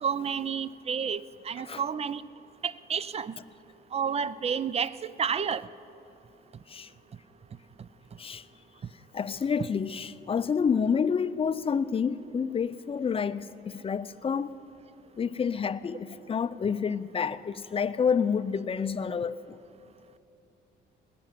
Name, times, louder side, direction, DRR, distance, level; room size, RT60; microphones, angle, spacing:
voice 1, 0.0-2.2 2.6-3.3 3.9-5.7, right 7 dB, 30° right, 0.4 m, -30 dB
voice 2, 9.1-14.6 15.2-19.6, left 6 dB, 30° left, 0.5 m, -29 dB
18.5 x 6.9 x 9.2 m
cardioid pair, 90°, 20 cm